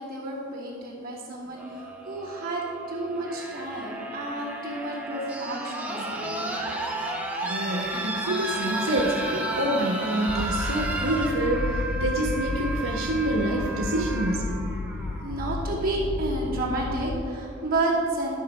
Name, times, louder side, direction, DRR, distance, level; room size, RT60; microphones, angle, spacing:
voice 1, 0.0-2.6 2.9-6.5 15.0-18.4, right 2 dB, 45° right, -6 dB, 2.7 m, -31 dB
sound 1, 1.5-15.5 16.7-16.8, right 1 dB, 5° right, 0.9 m, -33 dB
voice 2, 7.4-14.9, right 1 dB, 85° right, -1 dB, 1.0 m, -27 dB
sound 2, 10.3-17.2, left 3 dB, 40° left, 0.3 m, -32 dB
12.0 x 6.2 x 5.3 m, 2.5 s
head